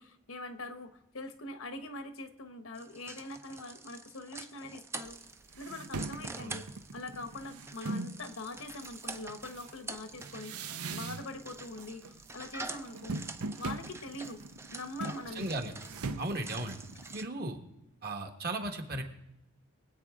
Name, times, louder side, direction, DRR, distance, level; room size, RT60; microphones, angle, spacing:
voice 1, 0.0-5.2 5.6-6.7 6.9-10.5 10.9-13.2 13.6-14.4 14.7-15.5, left 2 dB, 70° left, 9 dB, 1.1 m, -43 dB
sound 1, 2.7-17.2, right 3 dB, 10° right, 0.5 m, -47 dB
sound 2, 5.1-5.2 5.5-8.2 8.8-11.5 11.8-12.3 12.6-17.2, right 3 dB, 90° right, 0.7 m, -41 dB
voice 2, 15.3-15.7 16.2-16.8 17.1-17.6 18.0-19.0, right 2 dB, 45° right, 5 dB, 1.5 m, -36 dB
23.5 x 8.4 x 3.7 m, 0.88 s
head